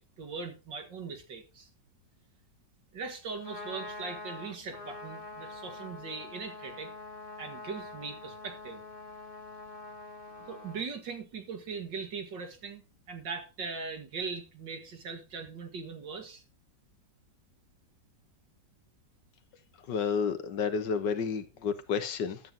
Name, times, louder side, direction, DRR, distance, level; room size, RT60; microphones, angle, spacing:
voice 1, 0.0-1.7 2.9-6.9 7.4-8.8 10.5-16.4, right 5 dB, 90° right, 2.6 m, -40 dB
Trumpet, 3.3-10.9, left 2 dB, 30° left, 1.8 m, -45 dB
voice 2, 19.9-22.4, left 6 dB, 75° left, 1.7 m, -30 dB
12.0 x 7.6 x 3.9 m
omnidirectional pair, 1.9 m